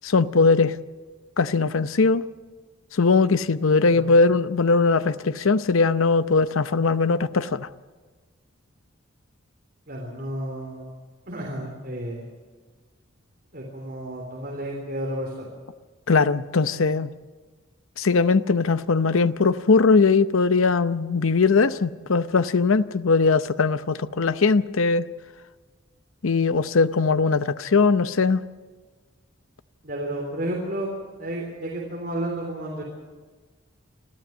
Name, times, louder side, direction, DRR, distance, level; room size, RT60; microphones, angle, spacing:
voice 1, 0.0-0.7 1.4-2.2 2.9-7.7 16.1-17.1 18.0-25.1 26.2-28.4, left 4 dB, 85° left, 14 dB, 0.7 m, -20 dB
voice 2, 9.9-10.8 11.3-12.3 13.5-15.5 29.8-30.9 31.2-32.8, right 1 dB, 45° right, -1 dB, 3.6 m, -32 dB
25.5 x 14.0 x 8.0 m, 1.4 s
head